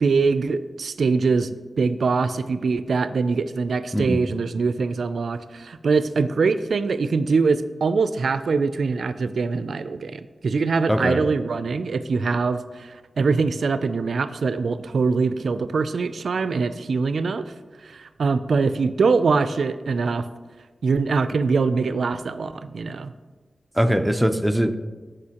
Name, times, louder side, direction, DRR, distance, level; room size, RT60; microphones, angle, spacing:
voice 1, 0.0-17.4 17.8-20.3 20.8-23.1, right 4 dB, 85° right, 12 dB, 0.4 m, -23 dB
voice 2, 3.9-4.2 10.9-11.2 23.7-24.8, equal, 5° right, 7 dB, 0.6 m, -21 dB
14.5 x 5.0 x 2.9 m, 1.4 s
wide cardioid pair, 65°, 0 cm